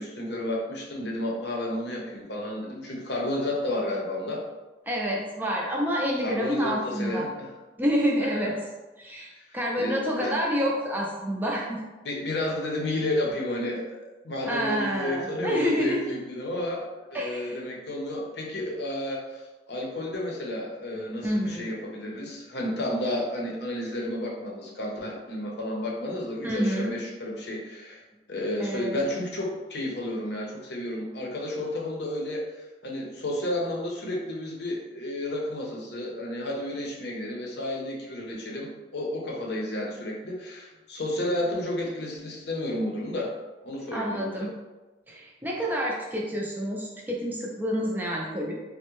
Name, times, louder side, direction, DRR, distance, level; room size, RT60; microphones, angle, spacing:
voice 1, 0.0-4.4 6.2-7.5 8.2-8.6 9.3-9.5 9.8-10.3 12.0-28.0 28.3-43.3 43.6-44.5, left 1 dB, 65° left, -1 dB, 0.7 m, -32 dB
voice 2, 4.9-7.3 7.8-8.6 9.0-11.8 14.5-16.0 17.1-17.5 21.2-21.7 26.4-27.0 28.6-29.0 43.9-44.5 45.1-48.6, equal, 10° right, -2 dB, 0.3 m, -28 dB
3.4 x 2.1 x 3.0 m, 1.2 s
head